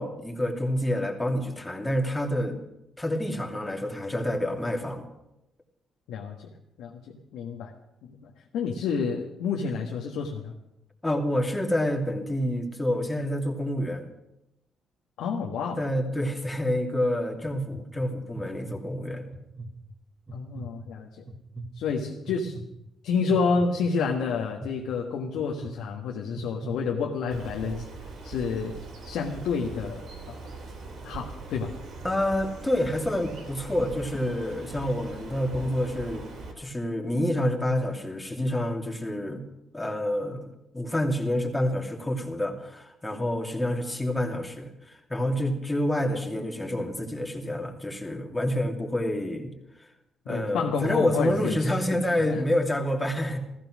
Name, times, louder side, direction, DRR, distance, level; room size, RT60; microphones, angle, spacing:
voice 1, 0.0-2.6 3.0-5.1 11.0-14.1 15.8-19.2 32.0-36.3 36.6-39.4 39.7-40.5 40.7-49.5 50.3-53.4, left 1 dB, 10° left, 2 dB, 2.8 m, -28 dB
voice 2, 6.1-6.5 6.8-7.0 7.3-7.7 8.0-10.5 15.2-15.8 20.3-21.1 21.7-22.5 23.0-27.9 28.2-28.7 29.0-30.3 31.0-31.7 50.3-51.7 52.2-52.4, left 5 dB, 85° left, 0 dB, 1.5 m, -29 dB
sound 1, 17.4-17.8 18.3-18.8 19.3-19.7 20.3-20.7 21.3-21.7 22.3-22.6 23.3-23.7 24.3-24.7 25.4-25.7 26.3-26.7 27.3-27.7, right 2 dB, 15° right, 2.4 m, -39 dB
Bird, 27.3-36.5, right 3 dB, 70° right, 4.6 m, -41 dB
15.0 x 14.5 x 6.3 m, 0.88 s
cardioid pair, 90°, 0 cm